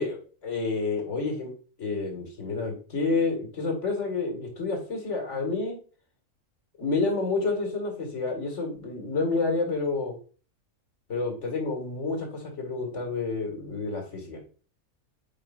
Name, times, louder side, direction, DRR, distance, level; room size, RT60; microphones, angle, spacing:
voice 1, 0.0-1.5 1.8-5.8 6.8-10.2 11.1-14.4, left 3 dB, 55° left, 2 dB, 2.2 m, -29 dB
9.2 x 5.2 x 2.5 m, 0.39 s
omnidirectional pair, 1.5 m